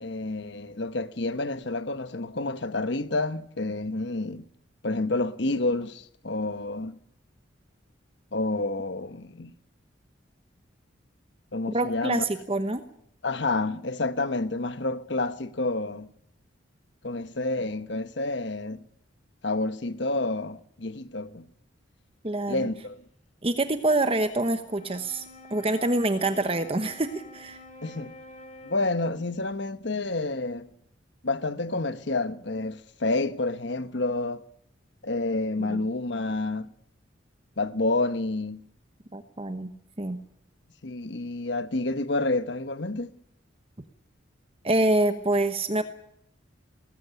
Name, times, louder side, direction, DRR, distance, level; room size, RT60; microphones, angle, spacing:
voice 1, 0.0-4.4 4.8-6.9 8.3-9.5 11.5-12.2 13.2-16.1 17.0-18.8 19.4-21.4 22.5-23.0 27.8-28.1 28.6-30.7 31.2-34.4 35.0-36.7 37.6-38.6 40.8-43.1, left 2 dB, 60° left, 1.1 m, -29 dB
voice 2, 11.7-12.8 22.2-22.7 23.4-25.2 25.5-27.6 35.6-35.8 39.1-39.7 40.0-40.2 44.6-45.8, right 2 dB, 30° right, 1.0 m, -26 dB
Wind instrument woodwind instrument, 24.5-29.3, left 2 dB, 35° left, 3.1 m, -48 dB
19.5 x 15.0 x 9.5 m
head